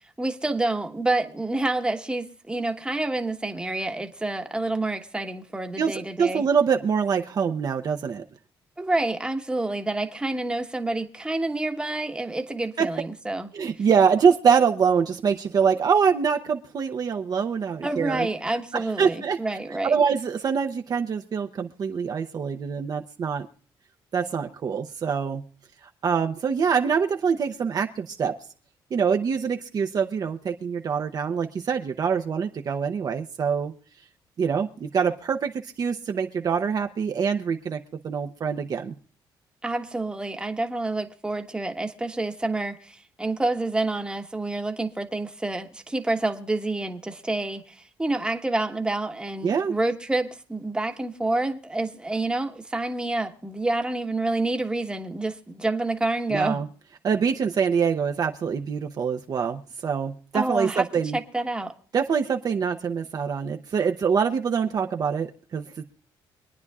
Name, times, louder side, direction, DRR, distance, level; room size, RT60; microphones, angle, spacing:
voice 1, 0.2-6.4 8.8-13.5 17.8-19.9 39.6-56.6 60.3-60.8 61.1-61.7, right 2 dB, 10° right, 1.2 m, -28 dB
voice 2, 5.8-8.2 12.8-12.9 13.5-18.3 18.7-19.4 19.7-23.5 24.1-25.4 26.0-28.3 28.9-33.7 34.4-38.9 49.4-49.7 56.3-56.7 57.0-61.2 61.9-65.8, right 6 dB, 45° right, 0.8 m, -24 dB
25.0 x 9.6 x 2.4 m
cardioid pair, 105°, 9 cm